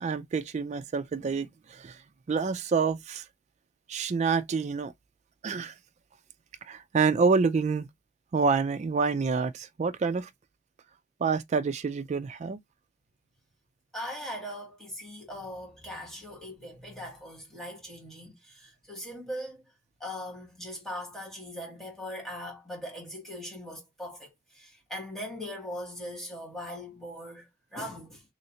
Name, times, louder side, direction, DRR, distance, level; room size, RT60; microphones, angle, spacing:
voice 1, 0.0-2.0 2.3-3.2 3.9-4.9 5.4-5.7 6.7-7.9 8.3-10.3 11.2-12.6, right 5 dB, 35° right, 0.3 m, -27 dB
voice 2, 13.9-19.6 20.0-28.2, equal, ahead, 1.3 m, -40 dB
3.1 x 2.8 x 2.8 m
head